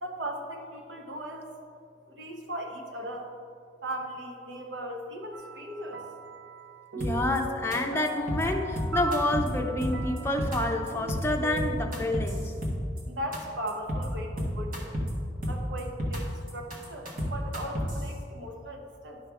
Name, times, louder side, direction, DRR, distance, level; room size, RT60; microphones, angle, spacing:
voice 1, 0.0-1.4 2.2-3.3 3.8-6.0 13.1-14.9 15.5-16.2 16.5-19.2, right 1 dB, 75° right, 1 dB, 1.1 m, -37 dB
sound 1, 5.3-11.8, right 2 dB, 90° right, 0.7 m, -39 dB
voice 2, 7.0-12.5, left 1 dB, 15° left, 1 dB, 0.6 m, -29 dB
sound 2, 7.0-7.4 7.7-7.8 8.1-8.4 8.8-9.5 9.8-10.6 10.9-11.2 11.6-13.0 13.3-13.4 13.7-14.0 14.4-15.1 15.4-16.2 16.5-18.0, equal, 50° right, 1.4 m, -31 dB
11.0 x 5.5 x 3.5 m, 2.4 s
head